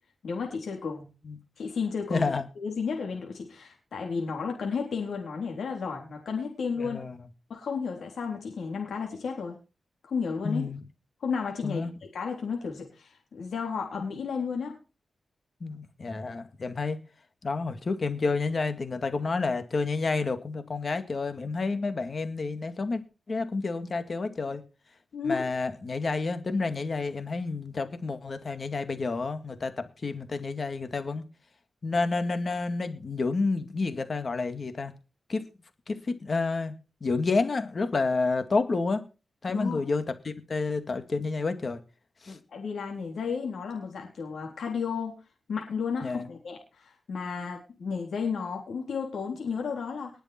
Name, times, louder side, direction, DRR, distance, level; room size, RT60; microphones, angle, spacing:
voice 1, 0.2-1.1 1.6-2.2 2.6-7.0 7.5-9.6 10.1-10.7 11.2-11.9 12.1-14.7 25.1-25.5 39.5-39.8 42.5-45.2 45.5-50.1, left 5 dB, 80° left, 1 dB, 3.7 m, -33 dB
voice 2, 2.1-2.5 6.8-7.3 10.4-10.8 11.6-11.9 15.6-17.0 17.4-23.0 23.3-24.6 25.2-31.2 31.8-34.9 35.3-35.4 35.9-36.7 37.0-39.0 39.4-41.8 42.2-42.4 46.0-46.3, left 3 dB, 40° left, 9 dB, 2.1 m, -29 dB
20.0 x 7.0 x 4.5 m, 0.32 s
wide cardioid pair, 130°, 0 cm